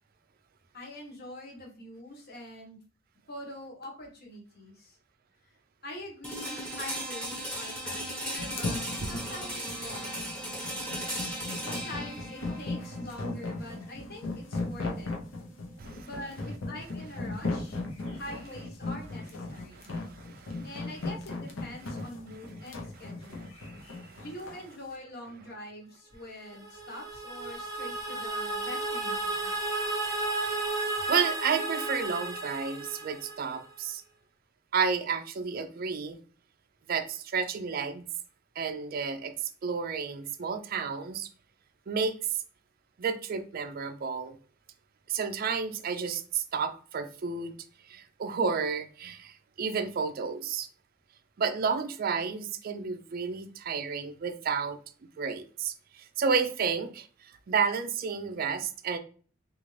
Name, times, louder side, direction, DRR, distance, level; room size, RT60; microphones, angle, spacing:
voice 1, 0.7-2.8 3.3-5.0 5.4-5.5 5.8-10.4 11.6-15.1 16.0-17.8 18.1-19.9 20.6-23.5 24.2-29.5, left 1 dB, 50° left, 1.0 m, -44 dB
sound 1, 6.2-16.1, right 1 dB, 5° left, 1.0 m, -38 dB
sound 2, 8.4-24.6, left 2 dB, 80° left, 0.7 m, -37 dB
voice 2, 19.7-20.7 23.3-24.2 31.1-34.0 34.7-36.2 36.9-38.0 38.6-39.3 39.6-41.3 41.9-42.2 43.0-44.4 45.1-47.6 47.9-50.7 51.4-54.8 55.2-59.0, right 5 dB, 45° right, 0.4 m, -31 dB
sound 3, 26.5-33.6, right 2 dB, 20° right, 0.7 m, -33 dB
3.8 x 2.5 x 3.1 m
head